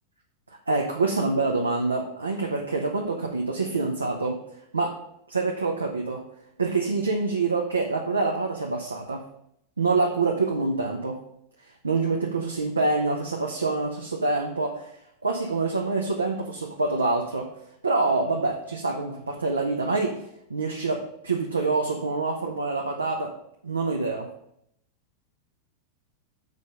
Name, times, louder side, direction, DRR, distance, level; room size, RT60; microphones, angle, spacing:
voice 1, 0.7-4.4 4.7-4.9 5.3-6.2 6.6-9.2 9.8-11.2 11.8-14.9 15.2-17.5 17.8-20.2 20.5-23.3 23.6-24.3, right 3 dB, 80° right, 1 dB, 0.7 m, -26 dB
6.7 x 4.9 x 5.3 m, 0.75 s
figure-of-eight pair, 90°, 0 cm